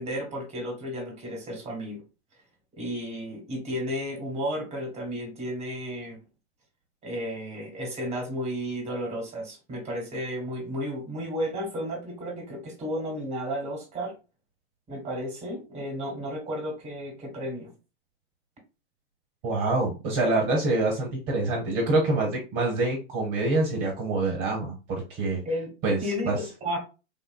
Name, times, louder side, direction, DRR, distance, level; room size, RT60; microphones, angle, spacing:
voice 1, 0.0-2.0 2.7-6.2 7.0-14.1 14.9-17.7 25.4-25.7 26.0-26.8, equal, 20° right, 2 dB, 1.6 m, -33 dB
voice 2, 19.4-25.4 25.8-26.0 26.2-26.4, right 2 dB, 45° right, -1 dB, 1.1 m, -26 dB
3.5 x 2.6 x 2.3 m, 0.31 s
hypercardioid pair, 110°, 34 cm